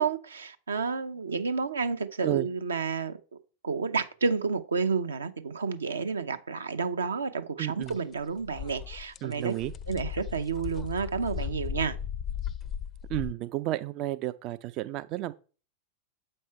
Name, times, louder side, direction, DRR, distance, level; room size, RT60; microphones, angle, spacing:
voice 1, 0.0-3.2 3.6-9.5 9.9-12.0, right 5 dB, 70° right, 0.7 m, -30 dB
voice 2, 7.6-8.0 9.2-9.7 13.1-15.3, right 15 dB, 40° right, 0.3 m, -32 dB
sound 1, 7.8-8.0 8.3-13.3, left 9 dB, 25° left, 0.4 m, -36 dB
7.7 x 5.4 x 4.4 m
figure-of-eight pair, 90°, 0 cm